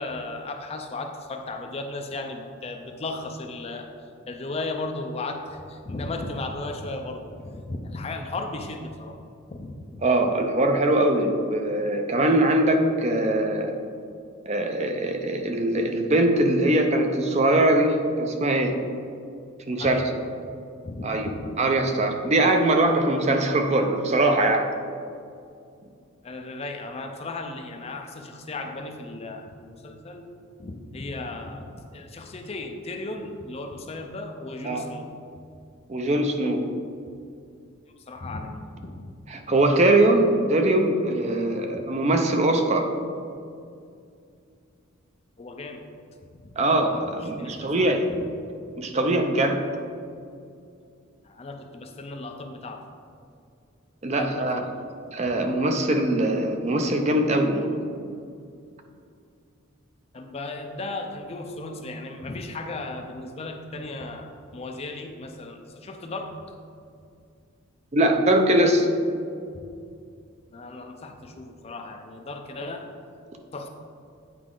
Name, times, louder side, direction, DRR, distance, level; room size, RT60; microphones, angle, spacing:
voice 1, 0.0-3.9 4.3-9.2 9.5-10.1 19.8-20.1 20.8-21.5 26.2-30.3 30.6-35.1 38.1-39.0 45.4-45.8 46.4-46.5 46.8-47.1 47.4-48.0 51.2-52.8 54.1-54.6 60.1-66.3 69.5-69.7 70.5-72.8 73.5-73.7, left 2 dB, 30° left, 4 dB, 0.4 m, -35 dB
voice 2, 10.0-13.7 14.5-18.7 19.7-20.1 21.0-21.3 21.6-24.7 34.6-34.8 35.9-36.6 39.3-42.9 46.6-48.1 48.8-49.6 54.0-54.6 55.1-57.8 67.9-68.9, right 1 dB, 30° right, 4 dB, 0.5 m, -22 dB
8.3 x 4.8 x 3.8 m, 2.4 s
head